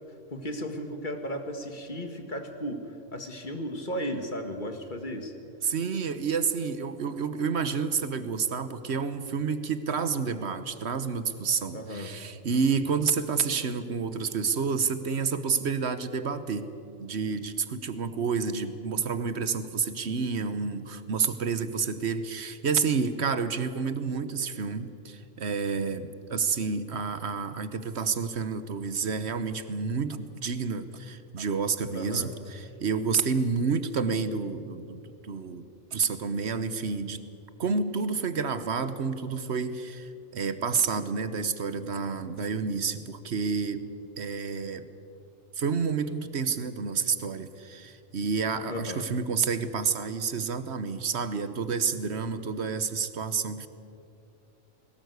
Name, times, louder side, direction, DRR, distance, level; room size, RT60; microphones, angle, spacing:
voice 1, 0.3-5.3 11.7-12.2 31.9-32.3 48.7-49.0, equal, 35° left, 6 dB, 2.0 m, -35 dB
voice 2, 5.6-16.7 17.0-37.2 37.6-43.8 44.2-44.8 45.5-53.7, right 5 dB, 55° right, 12 dB, 1.3 m, -29 dB
21.0 x 18.0 x 8.1 m, 2.6 s
omnidirectional pair, 1.4 m